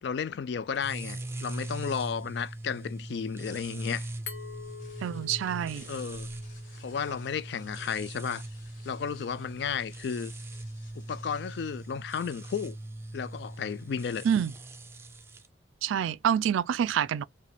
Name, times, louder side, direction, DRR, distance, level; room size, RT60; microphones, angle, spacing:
voice 1, 0.0-4.1 5.9-6.3 6.8-8.4 8.8-10.3 11.0-12.8 13.1-14.3, left 6 dB, 60° left, 0.3 m, -33 dB
sound 1, 0.7-15.5, right 1 dB, 15° right, 0.4 m, -41 dB
Glass, 4.3-7.0, left 7 dB, 85° left, 1.2 m, -46 dB
sound 2, 4.4-11.9, left 1 dB, 45° left, 1.5 m, -52 dB
voice 2, 5.0-5.8 14.2-14.5 15.8-17.2, right 9 dB, 85° right, 0.3 m, -27 dB
4.8 x 2.2 x 3.3 m
head